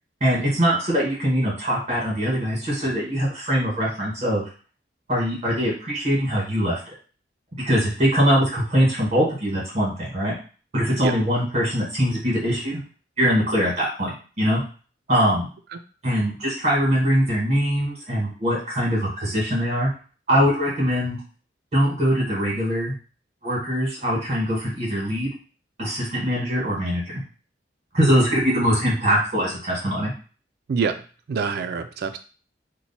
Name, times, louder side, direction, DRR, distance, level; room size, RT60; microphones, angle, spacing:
voice 1, 0.2-4.4 5.1-6.8 7.5-10.3 10.7-12.8 13.2-14.6 15.1-15.5 16.0-19.9 20.3-21.2 21.7-22.9 23.4-25.3 25.8-27.0 27.9-30.1, equal, 40° right, -5 dB, 1.6 m, -22 dB
voice 2, 31.3-32.2, right 5 dB, 60° right, 9 dB, 0.4 m, -25 dB
3.0 x 2.2 x 4.1 m, 0.37 s
head